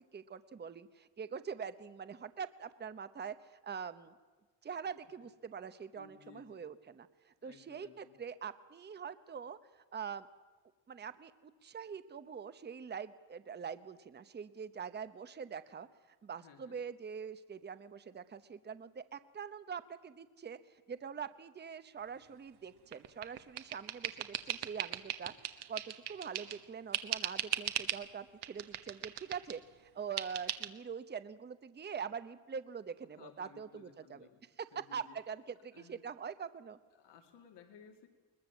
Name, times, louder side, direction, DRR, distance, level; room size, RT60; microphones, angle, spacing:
voice 1, 0.0-4.1 4.6-10.3 10.9-29.6 29.9-34.3 34.6-34.7 34.9-36.8, right 6 dB, 25° right, 12 dB, 0.9 m, -44 dB
voice 2, 5.9-6.6 7.4-8.2 16.4-16.8 33.2-34.4 34.7-35.2 35.7-36.0 36.9-38.1, left 7 dB, 65° left, 3 dB, 2.6 m, -58 dB
sound 1, 22.9-26.6 26.9-28.0 28.4-29.6 30.2-30.7, right 11 dB, 60° right, 1.3 m, -38 dB
21.5 x 20.0 x 7.3 m, 1.3 s
cardioid pair, 100°, 45 cm